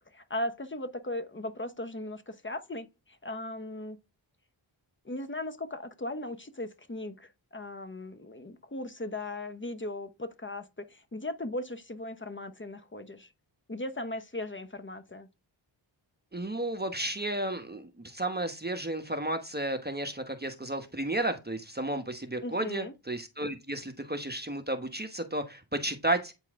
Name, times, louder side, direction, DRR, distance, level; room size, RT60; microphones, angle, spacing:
voice 1, 0.1-4.0 5.0-13.3 13.7-15.3 22.4-22.9, left 1 dB, 25° left, 1.0 m, -38 dB
voice 2, 16.3-26.3, right 1 dB, 20° right, 1.2 m, -33 dB
9.0 x 4.5 x 3.6 m
cardioid pair, 45°, 47 cm